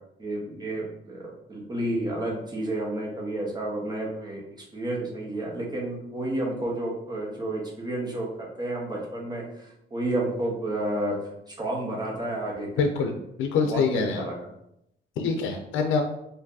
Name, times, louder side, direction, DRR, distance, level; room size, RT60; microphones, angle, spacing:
voice 1, 0.2-4.4 4.7-11.2 11.5-13.1 13.5-14.4, right 1 dB, 20° right, -3 dB, 1.2 m, -31 dB
voice 2, 12.8-13.1 13.4-14.3 15.2-16.0, left 5 dB, 85° left, 5 dB, 0.5 m, -25 dB
4.3 x 2.6 x 2.7 m, 0.80 s
cardioid pair, 90°, 20 cm